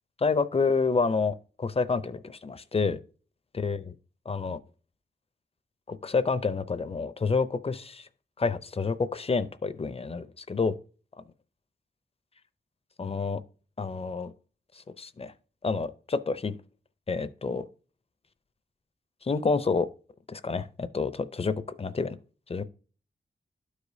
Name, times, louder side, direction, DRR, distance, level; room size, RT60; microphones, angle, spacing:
voice 1, 0.2-3.0 3.5-3.8 4.3-4.6 5.9-8.1 8.4-10.7 13.0-13.4 13.8-14.3 15.0-15.3 15.6-16.6 17.1-17.7 19.2-19.9 20.3-22.2 22.5-22.6, left 4 dB, 30° left, 0.5 m, -28 dB
12.5 x 5.0 x 2.7 m
wide cardioid pair, 140°, 19 cm